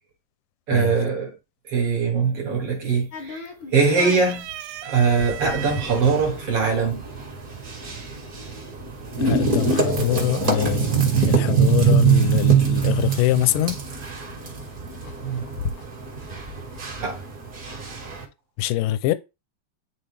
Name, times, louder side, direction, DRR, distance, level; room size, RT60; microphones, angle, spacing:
voice 1, 0.7-1.3 1.7-4.5 4.8-7.0 15.2-15.5 17.0-17.2, right 5 dB, 55° right, 1.8 m, -22 dB
sound 1, 2.3-2.7 3.0-3.7 4.1-6.0 6.9-7.0 8.2-8.7, right 13 dB, 85° right, 2.3 m, -37 dB
sound 2, 3.1-12.6 12.9-13.0 13.2-17.2, left 4 dB, 65° left, 1.2 m, -39 dB
sound 3, 5.0-18.2, right 6 dB, 35° right, 1.5 m, -24 dB
voice 2, 9.2-10.9 11.2-13.8 18.6-19.1, left 14 dB, 80° left, 2.0 m, -23 dB
10.0 x 3.9 x 3.3 m
omnidirectional pair, 3.9 m